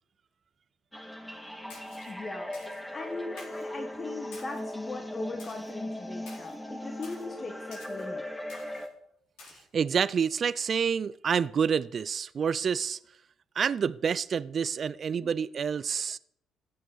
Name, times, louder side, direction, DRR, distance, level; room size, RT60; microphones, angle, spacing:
sound 1, 0.9-8.9, left 1 dB, 5° left, 2.0 m, -38 dB
Splash splatter, 1.7-2.1 2.5-2.8 3.4-3.7 4.3-4.7 5.4-5.7 6.3-6.5 7.0-7.3 7.7-8.0 8.5-8.9 9.4-9.6, left 3 dB, 75° left, 4.0 m, -50 dB
voice 1, 2.1-2.5 2.9-8.2 9.5-9.6 15.2-15.3, left 3 dB, 35° left, 1.4 m, -40 dB
voice 2, 9.7-13.0 13.6-16.2, right 7 dB, 50° right, 0.3 m, -28 dB
16.0 x 6.7 x 3.9 m
hypercardioid pair, 50°, 0 cm